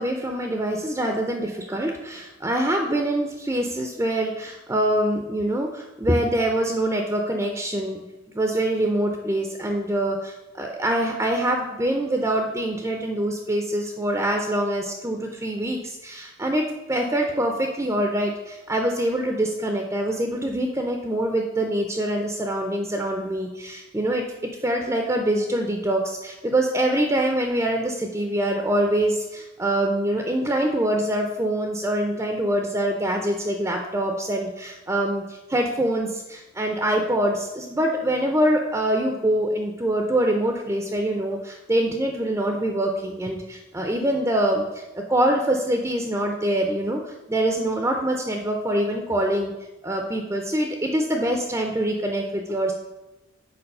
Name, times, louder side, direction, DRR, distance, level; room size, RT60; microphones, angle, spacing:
voice 1, 0.0-8.0 8.3-24.2 24.6-44.8 45.1-49.5 49.8-52.7, right 1 dB, 15° right, 3 dB, 0.4 m, -24 dB
6.9 x 4.5 x 5.3 m, 1.0 s
head